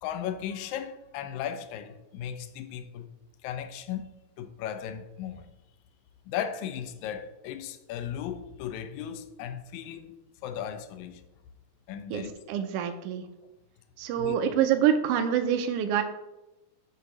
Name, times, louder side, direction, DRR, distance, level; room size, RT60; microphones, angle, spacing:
voice 1, 0.0-3.1 3.4-5.5 6.3-10.2 10.4-11.2 11.9-12.7 14.1-14.4, left 9 dB, 85° left, 2.0 m, -36 dB
voice 2, 12.1-13.2 14.0-16.0, right 9 dB, 80° right, 1.4 m, -26 dB
8.1 x 2.7 x 6.0 m
omnidirectional pair, 3.3 m